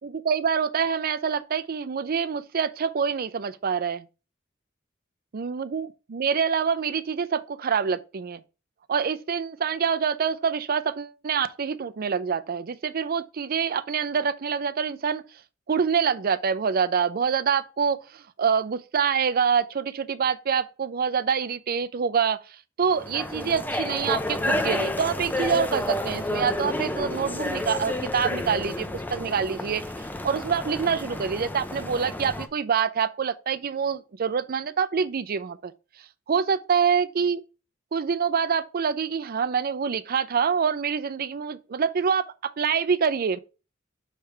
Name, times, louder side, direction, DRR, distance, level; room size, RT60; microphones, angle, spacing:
voice 1, 0.0-4.1 5.3-8.4 8.9-15.2 15.7-35.7 36.3-37.4 37.9-43.4, right 6 dB, 50° right, 0.5 m, -26 dB
sound 1, 22.9-32.5, left 1 dB, 10° left, 0.5 m, -30 dB
6.6 x 3.3 x 4.4 m
head